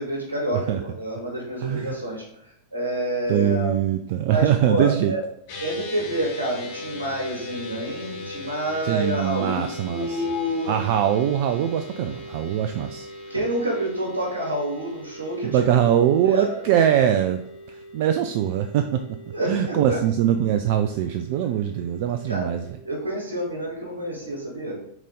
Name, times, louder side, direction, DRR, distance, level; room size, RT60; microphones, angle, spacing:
voice 1, 0.0-2.2 2.7-3.8 4.2-5.2 5.6-10.8 13.3-15.8 16.2-16.5 19.3-20.0 22.3-22.5 22.8-24.8, right 1 dB, 75° right, -1 dB, 2.3 m, -28 dB
voice 2, 1.6-2.0 3.3-5.1 8.8-10.2 10.7-13.1 15.5-17.4 17.9-19.1 19.5-22.6, right 10 dB, 50° right, 8 dB, 0.4 m, -22 dB
sound 1, 5.5-22.7, left 2 dB, 50° left, 2.2 m, -40 dB
6.0 x 4.1 x 3.9 m, 0.72 s
figure-of-eight pair, 90°, 0 cm